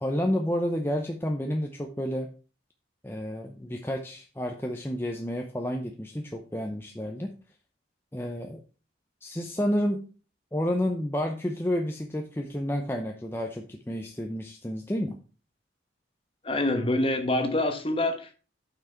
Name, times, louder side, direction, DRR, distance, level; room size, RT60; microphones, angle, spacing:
voice 1, 0.0-2.3 3.0-7.3 8.1-8.6 9.2-10.0 10.5-15.2, equal, 10° left, 0.7 m, -30 dB
voice 2, 16.4-18.4, left 1 dB, 30° left, 1.2 m, -26 dB
8.7 x 6.0 x 4.4 m
head